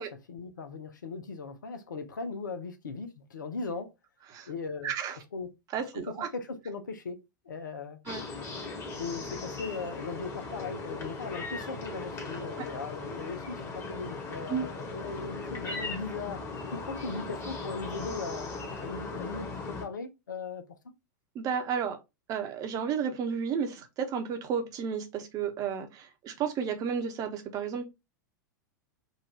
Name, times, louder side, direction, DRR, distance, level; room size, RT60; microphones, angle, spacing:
voice 1, 0.0-3.9 4.5-4.9 5.3-5.5 5.9-7.2 7.4-8.0 9.0-16.4 16.7-18.5 18.8-20.6, left 4 dB, 75° left, 0.8 m, -38 dB
voice 2, 4.8-5.2 5.7-6.3 8.1-8.2 14.5-14.7 21.3-22.0 22.3-27.9, right 7 dB, 35° right, 1.0 m, -32 dB
sound 1, 8.1-19.9, left 3 dB, 25° left, 1.5 m, -38 dB
4.0 x 2.6 x 4.5 m
figure-of-eight pair, 90°, 10 cm